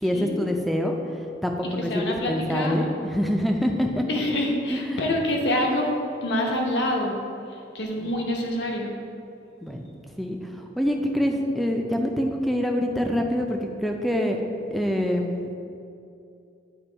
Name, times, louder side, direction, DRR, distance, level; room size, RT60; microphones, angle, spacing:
voice 1, 0.0-1.0 1.4-4.0 4.7-5.0 8.0-8.1 9.6-9.8 10.2-14.4 14.7-15.5, equal, ahead, 2 dB, 0.4 m, -25 dB
voice 2, 1.8-2.8 4.1-5.9 6.2-7.2 7.7-8.9, left 1 dB, 65° left, 0 dB, 0.9 m, -26 dB
8.7 x 3.0 x 4.4 m, 2.6 s
head